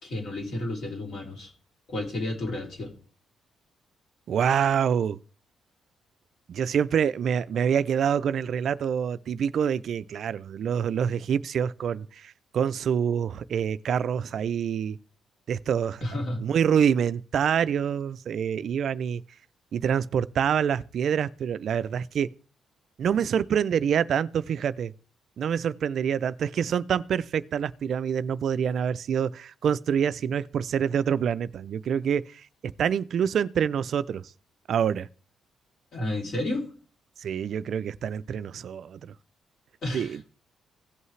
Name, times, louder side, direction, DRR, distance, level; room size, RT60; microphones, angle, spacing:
voice 1, 0.0-1.5 1.9-2.9 16.0-16.5 35.9-36.7 39.8-40.2, left 1 dB, 55° left, 2.8 m, -31 dB
voice 2, 4.3-5.2 6.5-15.0 15.5-16.0 16.4-19.2 19.7-22.3 23.0-24.9 25.4-34.2 34.7-35.1 37.2-39.1 39.9-40.3, right 8 dB, 55° right, 0.3 m, -26 dB
16.5 x 5.6 x 3.2 m
cardioid pair, 150°, 0 cm